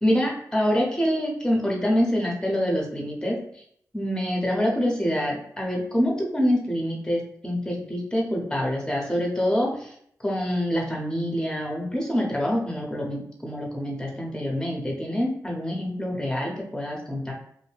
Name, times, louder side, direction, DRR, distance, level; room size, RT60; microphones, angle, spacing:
voice 1, 0.0-3.4 3.9-9.9 10.2-17.3, equal, 10° left, -1 dB, 0.9 m, -26 dB
2.6 x 2.2 x 3.3 m, 0.66 s
cardioid pair, 55°, 7 cm